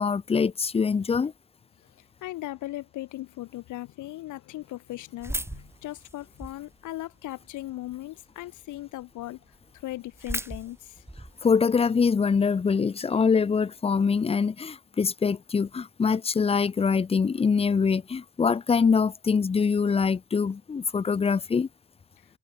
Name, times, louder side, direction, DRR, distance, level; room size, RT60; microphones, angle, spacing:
voice 1, 0.0-1.3 11.4-21.7, left 5 dB, 20° left, 0.5 m, -24 dB
voice 2, 2.2-9.4 9.8-11.0, left 16 dB, 75° left, 0.8 m, -38 dB
sound 1, 5.2-6.7 7.3-7.9 8.4-8.5 8.7-8.8 9.2-9.3 9.5-11.5, right 1 dB, 10° right, 2.5 m, -36 dB
cardioid pair, 90°, 30 cm